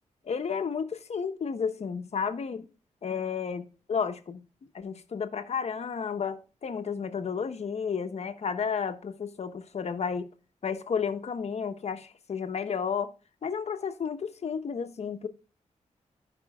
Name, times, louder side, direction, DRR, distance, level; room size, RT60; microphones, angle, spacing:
voice 1, 0.2-2.7 3.0-3.6 3.9-4.4 4.7-10.3 10.6-13.1 13.4-15.3, left 6 dB, 60° left, 1.1 m, -32 dB
15.0 x 5.4 x 2.3 m
wide cardioid pair, 105°, 13 cm